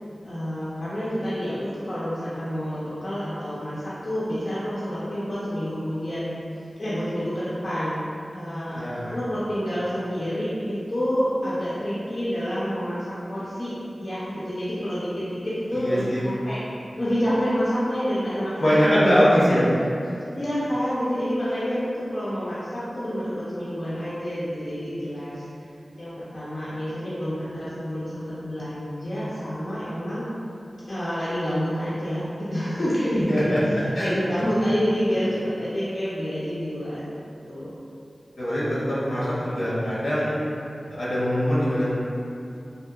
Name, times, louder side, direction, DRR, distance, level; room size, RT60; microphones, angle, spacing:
voice 1, 0.2-6.3 6.8-8.0 8.3-16.6 17.0-18.8 19.2-19.6 20.4-25.4 26.0-30.2 30.9-33.5 34.0-37.0 37.5-37.8, equal, 60° left, -11 dB, 0.5 m, -28 dB
voice 2, 8.7-9.1 15.7-16.3 18.6-19.7 33.3-33.6 33.9-34.1 38.4-40.4 40.9-41.9, equal, 85° left, -10 dB, 0.8 m, -22 dB
2.7 x 2.1 x 2.3 m, 2.6 s
wide cardioid pair, 50°, 0 cm